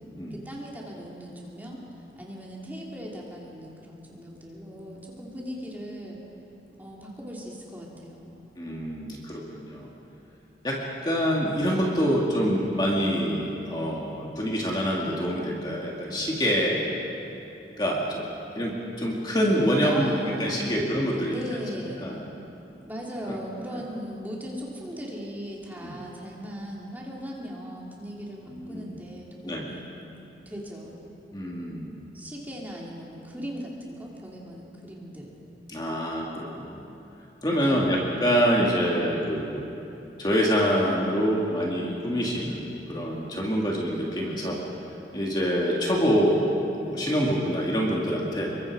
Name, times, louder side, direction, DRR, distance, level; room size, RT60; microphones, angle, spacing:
voice 1, 0.3-1.8 2.2-6.2 6.8-8.4 19.8-20.9 21.3-22.2 22.9-29.8 30.4-31.1 32.1-35.3 37.4-38.1, equal, 10° right, -4 dB, 3.0 m, -38 dB
voice 2, 8.6-9.9 10.6-16.8 17.8-18.3 18.6-21.4 22.0-22.2 23.3-23.4 25.8-25.9 28.5-29.0 29.4-29.7 31.3-31.9 35.7-36.8 37.4-39.7 40.2-44.6 45.1-48.5, equal, 25° left, -3 dB, 2.3 m, -26 dB
27.0 x 23.0 x 4.9 m, 2.9 s
head